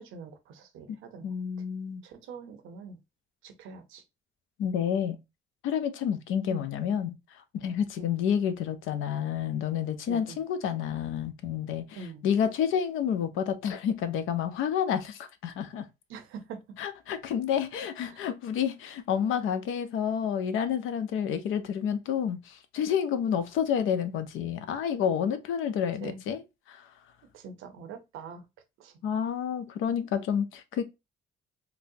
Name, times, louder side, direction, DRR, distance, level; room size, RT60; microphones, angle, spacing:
voice 1, 0.0-1.3 2.0-3.0 3.4-4.0 6.5-6.6 8.0-8.1 10.1-10.4 11.9-12.2 16.1-16.6 18.1-18.2 26.0-26.2 27.3-28.4 28.8-28.9, right 5 dB, 90° right, 0.7 m, -43 dB
voice 2, 1.2-2.0 4.6-5.2 5.6-7.2 7.6-15.8 16.8-26.4 26.7-26.8 29.0-30.8, left 8 dB, 85° left, 0.5 m, -29 dB
4.0 x 2.0 x 2.7 m
cardioid pair, 90°, 20 cm